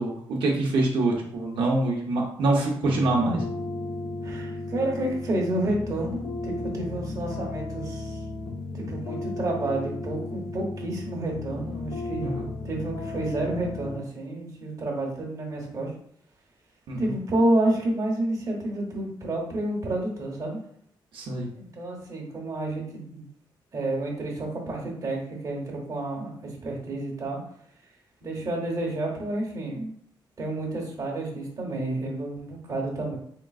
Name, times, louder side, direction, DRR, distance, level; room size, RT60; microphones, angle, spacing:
voice 1, 0.0-3.4 12.2-12.5 16.9-17.1 21.1-21.5, right 2 dB, 80° right, -2 dB, 0.7 m, -25 dB
sound 1, 2.8-14.0, left 2 dB, 75° left, 0.7 m, -35 dB
voice 2, 4.2-8.2 8.7-15.9 17.0-20.6 21.5-23.3 23.7-27.4 28.2-29.9 30.4-33.2, right 1 dB, 40° right, -2 dB, 1.0 m, -30 dB
3.7 x 3.5 x 2.4 m, 0.65 s
wide cardioid pair, 150°, 8 cm